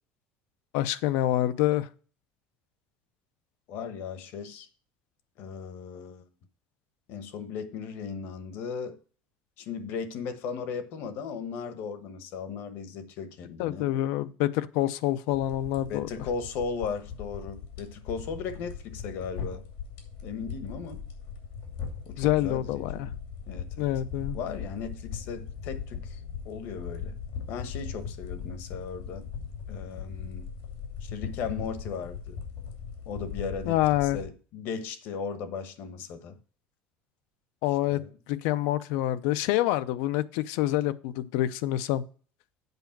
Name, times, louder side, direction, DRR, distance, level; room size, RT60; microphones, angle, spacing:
voice 1, 0.7-1.9 13.6-16.1 22.2-23.1 23.8-24.4 33.7-34.2 37.6-38.0 38.3-42.0, left 14 dB, 70° left, 0.5 m, -27 dB
voice 2, 3.7-4.7 5.4-6.2 7.1-9.0 9.6-13.9 15.9-19.6 20.2-21.0 22.1-23.1 23.5-23.9 24.3-26.2 26.4-27.2 27.5-29.3 29.7-30.5 31.0-32.4 33.1-33.8 34.1-36.4 37.9-38.1, left 6 dB, 55° left, 1.1 m, -37 dB
sound 1, 15.3-34.3, left 6 dB, 85° left, 2.5 m, -39 dB
8.1 x 5.0 x 5.9 m
cardioid pair, 180°, 4 cm